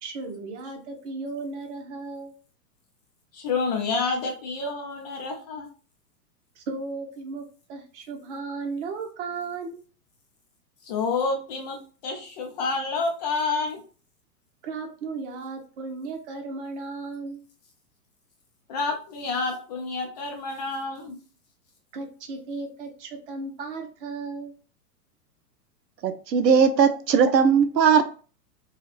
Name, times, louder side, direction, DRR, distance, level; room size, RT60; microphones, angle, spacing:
voice 1, 0.0-2.3 6.5-7.4 7.7-9.8 14.6-17.4 21.9-24.5, right 4 dB, 45° right, 0.9 m, -35 dB
voice 2, 3.3-5.7 10.8-11.8 12.0-13.8 18.7-21.2, left 4 dB, 30° left, 0.4 m, -28 dB
voice 3, 26.0-28.2, right 6 dB, 90° right, 0.6 m, -19 dB
3.0 x 2.4 x 2.5 m
figure-of-eight pair, 110°, 48 cm